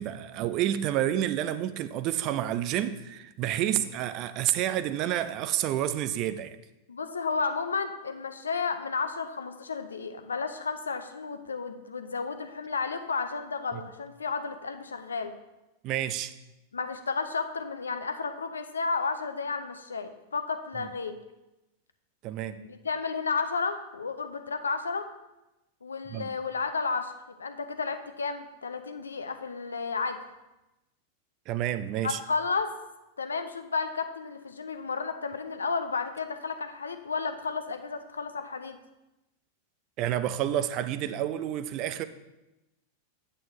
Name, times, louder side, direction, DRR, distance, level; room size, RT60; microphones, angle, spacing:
voice 1, 0.0-6.6 13.7-13.8 15.8-16.3 22.2-22.6 26.1-26.3 31.5-32.2 40.0-42.0, right 11 dB, 40° right, 0.4 m, -29 dB
voice 2, 6.9-15.3 16.7-21.2 22.6-25.1 25.8-30.2 32.0-32.7 33.2-38.8, left 4 dB, 75° left, 0.5 m, -32 dB
8.7 x 7.6 x 3.1 m
figure-of-eight pair, 90°, 0 cm